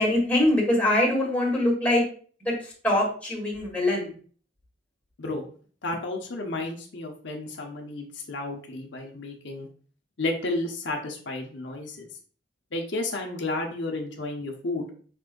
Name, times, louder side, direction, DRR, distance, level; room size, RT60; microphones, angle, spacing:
voice 1, 0.0-2.0 2.4-4.1, left 1 dB, 10° left, -3 dB, 1.7 m, -23 dB
voice 2, 5.8-9.7 10.2-12.1 12.7-15.0, left 2 dB, 70° left, 1 dB, 0.8 m, -32 dB
5.4 x 3.8 x 2.5 m, 0.43 s
head